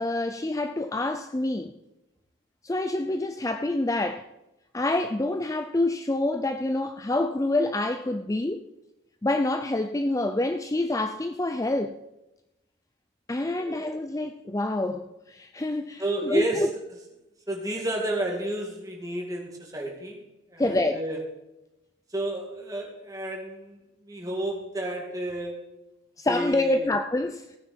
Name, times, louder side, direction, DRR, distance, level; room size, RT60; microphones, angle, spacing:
voice 1, 0.0-1.7 2.6-4.3 4.7-8.6 9.2-12.0 13.3-16.7 20.6-21.0 26.2-27.6, left 2 dB, 15° left, 0.4 m, -27 dB
voice 2, 16.0-16.7 17.5-20.2 20.5-21.2 22.1-25.6 26.3-26.9, right 1 dB, 20° right, 2.4 m, -31 dB
17.0 x 9.1 x 4.4 m
head